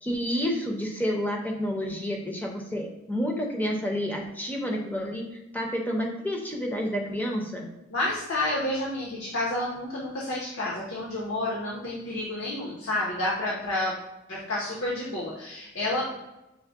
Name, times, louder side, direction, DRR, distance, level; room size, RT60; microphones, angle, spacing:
voice 1, 0.0-5.2 5.5-7.7, equal, 10° left, 0 dB, 0.6 m, -29 dB
voice 2, 7.9-13.9 14.3-16.1, left 1 dB, 65° left, -5 dB, 0.8 m, -30 dB
6.3 x 2.1 x 3.5 m, 0.95 s
head